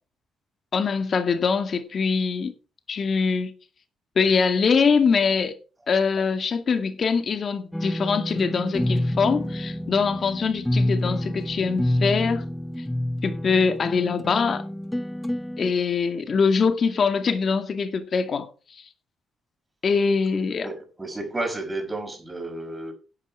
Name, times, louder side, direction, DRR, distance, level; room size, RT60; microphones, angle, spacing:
voice 1, 0.7-2.5 2.9-3.5 4.2-5.5 5.9-12.5 13.2-14.6 15.6-18.5 19.8-20.7, left 5 dB, 45° left, 2.1 m, -23 dB
sound 1, 7.7-15.7, left 1 dB, 5° left, 1.0 m, -28 dB
voice 2, 20.6-22.9, right 2 dB, 15° right, 5.3 m, -32 dB
12.0 x 8.2 x 4.8 m
cardioid pair, 90°, 0 cm